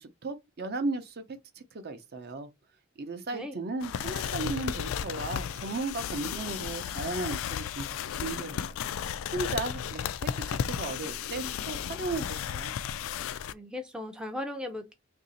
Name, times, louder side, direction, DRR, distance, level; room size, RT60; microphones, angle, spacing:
voice 1, 0.0-2.5 3.0-7.9 8.2-8.8 9.3-12.7, right 3 dB, 50° right, 0.6 m, -35 dB
sound 1, 3.8-13.5, left 8 dB, 75° left, 0.3 m, -34 dB
voice 2, 13.5-14.9, left 1 dB, 5° right, 0.4 m, -37 dB
2.8 x 2.7 x 4.0 m
head